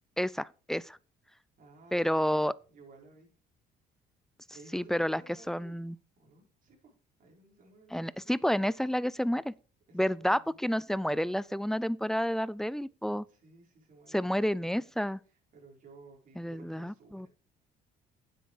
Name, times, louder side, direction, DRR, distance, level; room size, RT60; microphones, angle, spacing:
voice 1, 0.2-1.0 1.9-2.5 4.7-5.2 5.5-6.0 7.9-9.5 9.9-13.2 14.1-15.2 16.4-17.3, equal, 5° left, 0.4 m, -30 dB
voice 2, 1.6-3.3 4.5-6.9 7.2-8.3 9.9-10.6 13.3-14.9 15.3-17.3, right 3 dB, 50° right, 5.3 m, -56 dB
9.3 x 8.0 x 5.0 m
cardioid pair, 110°, 17 cm